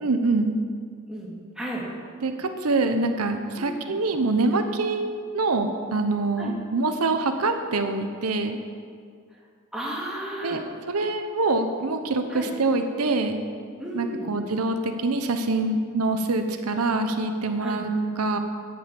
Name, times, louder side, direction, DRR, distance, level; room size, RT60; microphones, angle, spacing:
voice 1, 0.0-0.6 2.2-5.1 5.3-8.6 10.4-13.4 13.9-17.9 18.2-18.4, right 3 dB, 90° right, 7 dB, 0.9 m, -25 dB
voice 2, 1.1-1.9 3.6-3.8 6.4-6.5 9.7-10.6 12.3-12.5 13.8-14.3 17.6-17.8, right 1 dB, 5° right, -5 dB, 2.3 m, -33 dB
9.4 x 8.8 x 8.3 m, 2.1 s
head